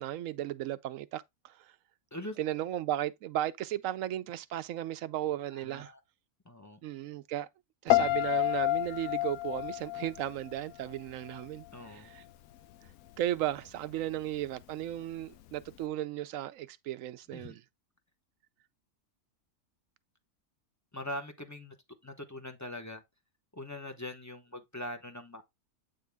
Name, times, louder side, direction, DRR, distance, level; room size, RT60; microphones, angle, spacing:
voice 1, 0.0-1.7 2.4-5.9 6.8-7.5 7.8-12.2 13.2-17.6, right 13 dB, 70° right, 0.9 m, -35 dB
voice 2, 5.5-6.0 6.4-6.8 11.7-12.1 17.3-17.6 20.9-21.7 22.0-23.0 23.5-25.4, left 1 dB, 15° left, 0.7 m, -42 dB
Piano, 7.9-11.0 11.3-11.7, left 16 dB, 75° left, 1.0 m, -29 dB
8.5 x 3.8 x 3.4 m
omnidirectional pair, 1.6 m